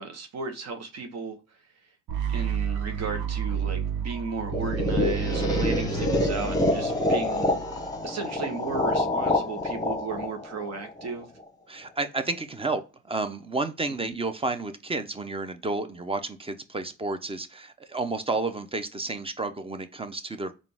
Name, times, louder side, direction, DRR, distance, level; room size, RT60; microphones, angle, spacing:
voice 1, 0.0-1.4 2.3-7.5 8.0-11.3 14.0-14.1, right 4 dB, 60° right, 0.9 m, -35 dB
sound 1, 2.1-8.0, right 8 dB, 90° right, 0.7 m, -31 dB
sound 2, 4.5-11.4, left 2 dB, 10° left, 1.1 m, -27 dB
voice 2, 11.7-20.5, right 3 dB, 20° right, 0.5 m, -31 dB
4.1 x 2.5 x 3.4 m
cardioid pair, 90°, 30 cm